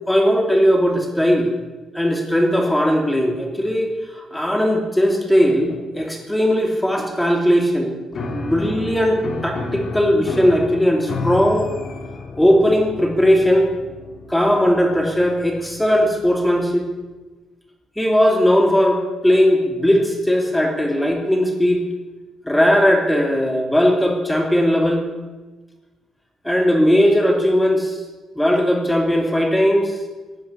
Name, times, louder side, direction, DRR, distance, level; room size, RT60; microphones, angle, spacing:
voice 1, 0.1-1.5 1.9-8.0 8.3-11.7 12.3-13.7 14.3-16.9 18.0-21.8 22.5-25.1 26.4-28.0 28.3-29.9, equal, 5° left, 2 dB, 2.7 m, -18 dB
Piano, 8.1-16.6, left 3 dB, 50° left, 2.4 m, -32 dB
15.5 x 9.4 x 9.8 m, 1.2 s
cardioid pair, 90°, 0 cm